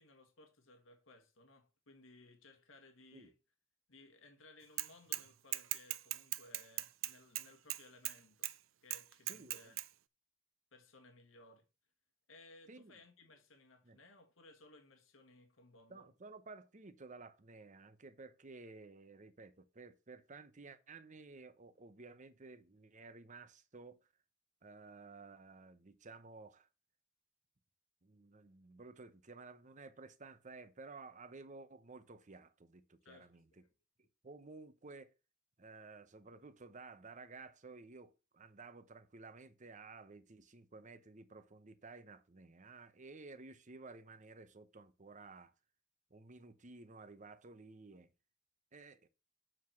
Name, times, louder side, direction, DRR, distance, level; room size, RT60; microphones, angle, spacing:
voice 1, 0.0-3.3 3.9-8.5 8.8-9.8 10.7-11.6 12.3-16.1 33.0-33.6, left 2 dB, 85° left, 1.7 m, -61 dB
Bicycle / Mechanisms, 4.8-5.2 5.5-8.2 8.4-8.5 8.9-9.9, right 16 dB, 80° right, 0.5 m, -39 dB
voice 2, 9.3-9.8 12.7-13.0 13.8-14.0 15.9-24.1 24.6-26.7 28.0-33.4 34.2-35.1 35.6-45.5 46.1-48.1 48.7-49.1, right 3 dB, 40° right, 0.8 m, -54 dB
7.6 x 4.9 x 5.8 m
head